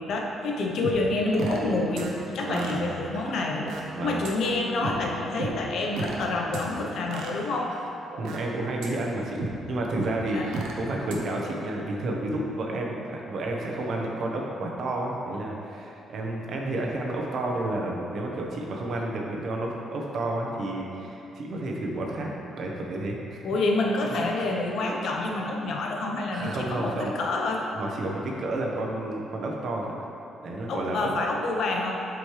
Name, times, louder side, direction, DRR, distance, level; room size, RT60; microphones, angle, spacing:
voice 1, 0.0-7.7 10.3-10.5 23.4-27.7 30.7-32.0, left 2 dB, 70° left, 0 dB, 0.8 m, -28 dB
sound 1, 0.8-1.7 2.0-2.1 2.5-3.8 4.2-4.3 4.8-4.9 5.4-6.2 6.5-6.7 7.1-8.4 8.8-8.9 9.4-9.5 10.0-10.7 11.1-11.2, right 3 dB, 85° right, 0.8 m, -34 dB
voice 2, 2.4-2.8 3.9-4.2 8.2-22.3 22.6-23.4 24.2-24.3 26.3-27.1 27.7-29.9 30.4-31.1, right 2 dB, 60° right, -1 dB, 1.0 m, -31 dB
7.6 x 5.1 x 3.2 m, 2.9 s
cardioid pair, 90°, 0 cm